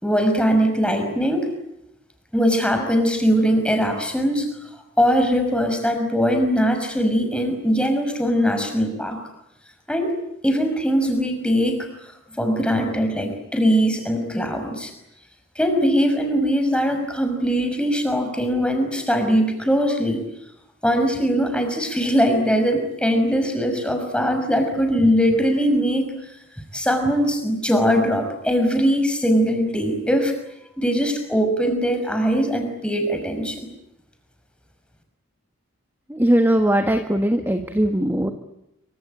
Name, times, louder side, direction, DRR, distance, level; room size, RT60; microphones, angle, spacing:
voice 1, 0.0-1.5 2.3-4.5 5.0-9.2 9.9-10.1 10.4-11.9 12.3-14.9 15.6-20.2 20.8-26.2 26.7-30.3 30.8-33.7, equal, 5° left, 5 dB, 5.5 m, -21 dB
voice 2, 36.1-38.3, right 1 dB, 10° right, 6 dB, 1.4 m, -19 dB
26.5 x 24.5 x 9.0 m, 0.82 s
head